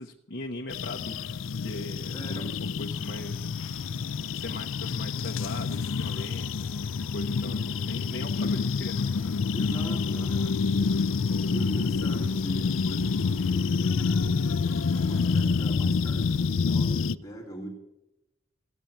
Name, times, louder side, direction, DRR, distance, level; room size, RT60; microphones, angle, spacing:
voice 1, 0.0-3.9 4.4-9.1, left 2 dB, 55° left, 2 dB, 1.0 m, -40 dB
sound 1, 0.7-17.2, left 5 dB, 70° left, 0.4 m, -28 dB
voice 2, 2.1-2.6 9.5-11.2 11.5-17.7, right 2 dB, 20° left, 0 dB, 2.4 m, -40 dB
sound 2, 2.9-13.7, equal, ahead, 3.2 m, -57 dB
sound 3, 9.6-15.4, right 1 dB, 55° right, 2.6 m, -55 dB
16.0 x 8.9 x 8.1 m, 0.92 s
head